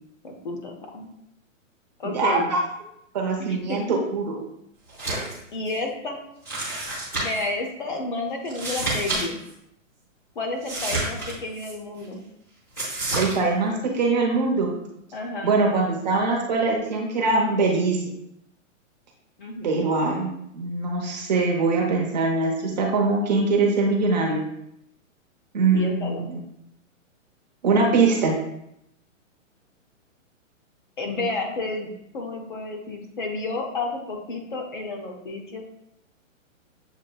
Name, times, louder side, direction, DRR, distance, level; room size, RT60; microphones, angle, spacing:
voice 1, 0.2-1.1 2.0-2.5 3.4-3.8 5.5-6.2 7.2-9.4 10.4-12.2 15.1-15.6 19.4-19.9 25.7-26.3 31.0-31.9 32.1-35.6, left 2 dB, 40° left, 2 dB, 0.6 m, -31 dB
voice 2, 2.0-2.6 3.1-4.4 13.2-14.7 15.4-18.0 19.6-24.4 25.5-26.4 27.6-28.3, right 3 dB, 35° right, 0 dB, 0.7 m, -22 dB
sound 1, 4.9-5.4 5.7-5.8 6.4-7.5 8.4-9.2 9.5-9.6 10.6-11.7 12.7-13.3, right 2 dB, 5° left, 0.7 m, -29 dB
7.4 x 2.6 x 2.3 m, 0.77 s
hypercardioid pair, 170°, 40 cm